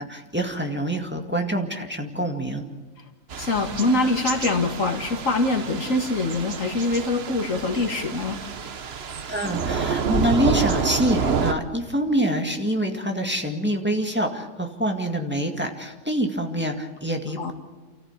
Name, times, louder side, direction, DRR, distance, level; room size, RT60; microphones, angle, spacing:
voice 1, 0.0-2.7 9.3-17.5, right 1 dB, 10° right, 2 dB, 2.1 m, -26 dB
Thunder / Rain, 3.3-11.5, right 6 dB, 55° right, 1.2 m, -28 dB
voice 2, 3.4-8.4 17.4-17.5, left 2 dB, 75° left, 4 dB, 2.5 m, -24 dB
29.0 x 14.5 x 8.3 m, 1.3 s
omnidirectional pair, 1.4 m